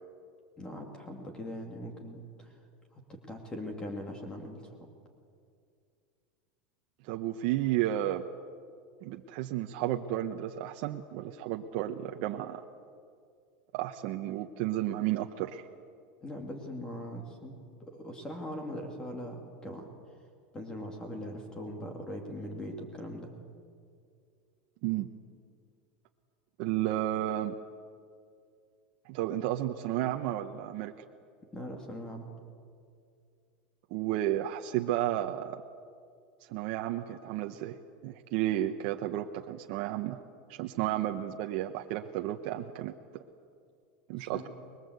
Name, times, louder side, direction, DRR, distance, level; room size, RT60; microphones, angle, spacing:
voice 1, 0.6-2.6 2.9-4.9 16.2-19.9 20.5-23.3 31.5-32.3 44.2-44.5, equal, 15° left, 3 dB, 2.6 m, -41 dB
voice 2, 7.0-8.3 9.0-12.6 13.7-15.6 24.8-25.1 26.6-27.5 29.1-30.9 33.9-35.6 36.4-37.8 38.0-40.2 40.5-42.9 44.1-44.5, right 13 dB, 55° right, 4 dB, 1.0 m, -32 dB
25.0 x 22.0 x 8.2 m, 2.3 s
supercardioid pair, 145°, 5 cm